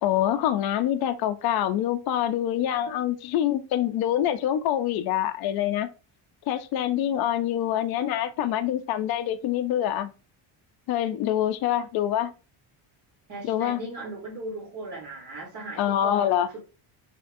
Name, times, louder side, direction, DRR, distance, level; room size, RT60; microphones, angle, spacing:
voice 1, 0.0-5.9 6.5-10.1 10.9-12.3 13.4-13.8 15.8-16.5, left 11 dB, 50° left, 0.5 m, -25 dB
voice 2, 13.3-16.6, right 2 dB, 35° right, 1.2 m, -37 dB
3.9 x 3.5 x 2.5 m
cardioid pair, 160°, 48 cm